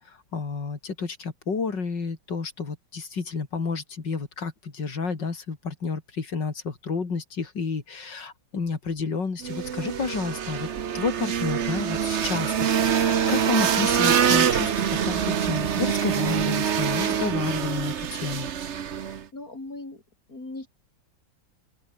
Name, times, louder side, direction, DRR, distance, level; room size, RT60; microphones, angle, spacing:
voice 1, 0.1-10.7 10.9-18.5, left 4 dB, 65° left, 3.8 m, -30 dB
sound 1, 9.4-19.2, right 8 dB, 45° right, 1.0 m, -25 dB
voice 2, 19.0-20.0 20.3-20.7, left 2 dB, 45° left, 6.1 m, -39 dB
open air
omnidirectional pair, 2.1 m